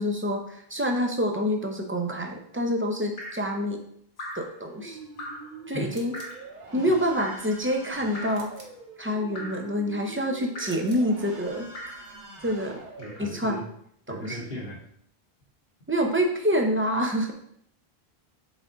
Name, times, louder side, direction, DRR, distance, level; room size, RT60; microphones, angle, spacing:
voice 1, 0.0-3.8 4.3-5.0 5.7-6.1 6.7-8.5 9.0-11.7 12.4-12.8 13.2-13.6 14.1-14.4 15.9-17.3, equal, 15° right, 3 dB, 0.7 m, -27 dB
Drip, 3.2-3.5 4.2-4.5 5.2-5.5 6.1-6.5 7.2-7.5 8.1-8.5 9.4-9.7 10.6-10.9 11.7-12.1 13.0-13.3 14.2-14.4, equal, 80° left, 1.6 m, -40 dB
sound 1, 4.4-13.6, right 3 dB, 75° right, 1.9 m, -45 dB
sound 2, 5.9-6.4 8.3-8.8 10.6-11.1, right 2 dB, 35° right, 1.0 m, -50 dB
voice 2, 13.0-13.6 14.1-14.8, left 1 dB, 55° left, -2 dB, 1.3 m, -37 dB
7.1 x 3.7 x 3.9 m, 0.68 s
omnidirectional pair, 1.0 m